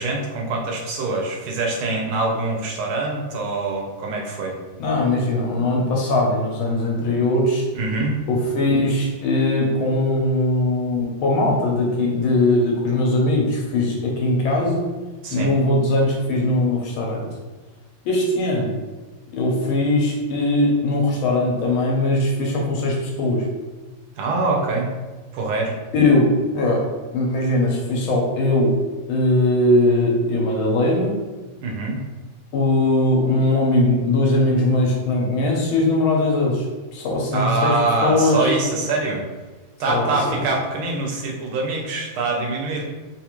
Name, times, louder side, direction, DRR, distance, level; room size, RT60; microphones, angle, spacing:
voice 1, 0.0-4.6 7.7-8.2 15.2-15.5 24.2-24.9 25.3-25.7 31.6-32.0 37.3-39.2 39.8-42.8, right 3 dB, 85° right, 0 dB, 1.6 m, -24 dB
voice 2, 4.8-7.7 8.3-14.9 15.3-17.3 18.0-18.7 19.3-23.5 25.9-28.8 29.1-31.2 32.5-36.7 36.9-38.5 39.9-40.0, left 2 dB, 80° left, -1 dB, 1.5 m, -20 dB
3.7 x 2.4 x 2.9 m, 1.3 s
omnidirectional pair, 2.2 m